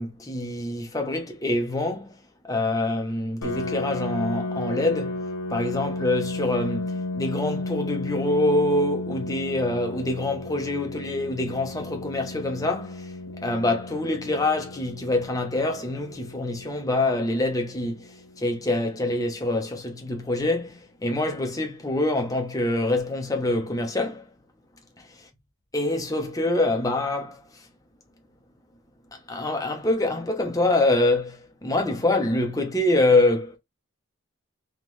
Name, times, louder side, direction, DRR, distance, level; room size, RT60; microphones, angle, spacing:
voice 1, 0.0-2.2 2.4-5.2 5.5-24.3 25.0-25.1 25.7-27.6 29.1-33.6, left 2 dB, 15° left, 0.9 m, -25 dB
Piano, 3.4-18.8, left 2 dB, 85° left, 1.1 m, -34 dB
3.7 x 3.2 x 3.1 m
head